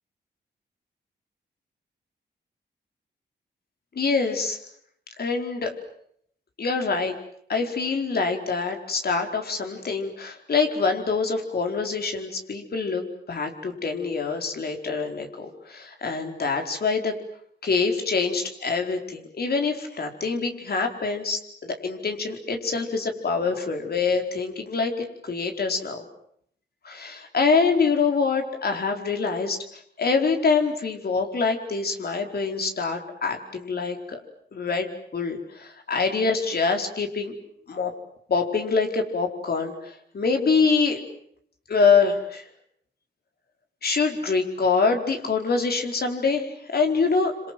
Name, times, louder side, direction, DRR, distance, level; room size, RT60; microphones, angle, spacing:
voice 1, 3.9-4.6 5.2-5.7 6.6-7.1 7.5-17.1 17.6-24.9 25.2-26.0 26.8-29.6 30.0-34.2 34.5-37.3 37.7-37.9 38.3-41.0 41.7-42.4 43.8-47.5, left 4 dB, 60° left, 4 dB, 4.6 m, -25 dB
28.0 x 26.5 x 7.8 m, 0.71 s
cardioid pair, 85°, 18 cm